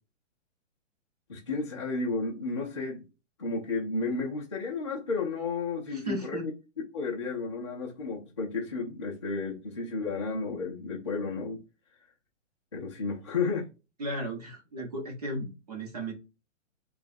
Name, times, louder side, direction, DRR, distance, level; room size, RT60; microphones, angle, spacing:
voice 1, 1.3-3.1 3.4-6.5 6.9-11.6 12.7-13.7, left 4 dB, 25° left, 0.5 m, -32 dB
voice 2, 5.9-6.5 14.0-16.1, right 1 dB, 30° right, 0.9 m, -35 dB
3.0 x 2.4 x 4.1 m
hypercardioid pair, 180°, 38 cm